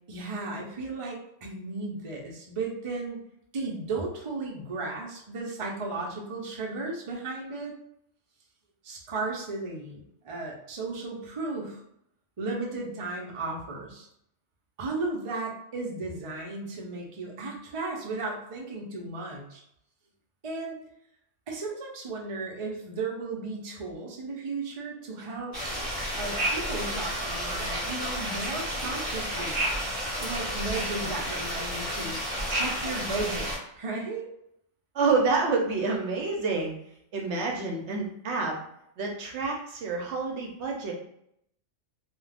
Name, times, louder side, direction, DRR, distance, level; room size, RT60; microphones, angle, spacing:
voice 1, 0.1-3.2 3.5-7.7 8.8-11.8 12.4-14.1 14.8-19.6 20.4-20.8 21.5-25.5 26.2-29.6 30.2-32.2 32.5-34.3, right 3 dB, 40° right, -2 dB, 0.5 m, -35 dB
sound 1, 25.5-33.6, equal, 15° right, 1.4 m, -31 dB
voice 2, 34.9-36.7 37.1-38.5 39.0-40.9, right 4 dB, 70° right, 0 dB, 0.8 m, -28 dB
2.4 x 2.3 x 3.3 m, 0.74 s
omnidirectional pair, 1.3 m